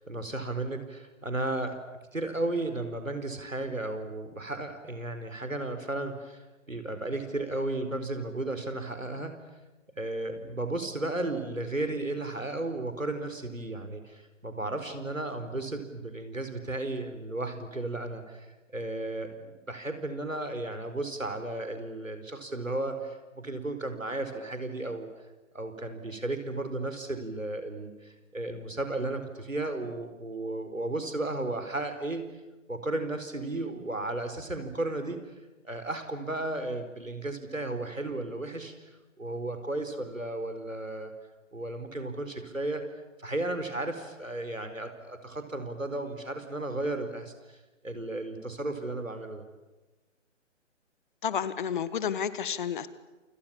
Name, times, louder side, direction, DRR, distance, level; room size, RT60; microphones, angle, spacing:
voice 1, 0.0-1.8 2.1-9.3 10.0-18.5 18.7-19.3 19.7-25.1 25.5-32.3 32.7-35.2 35.6-38.9 39.2-41.1 41.5-42.9 43.2-47.6 47.8-49.4, right 2 dB, 90° right, 8 dB, 4.8 m, -34 dB
voice 2, 51.2-52.9, left 8 dB, 40° left, 15 dB, 1.7 m, -30 dB
28.5 x 27.5 x 7.4 m, 1.2 s
figure-of-eight pair, 140°, 38 cm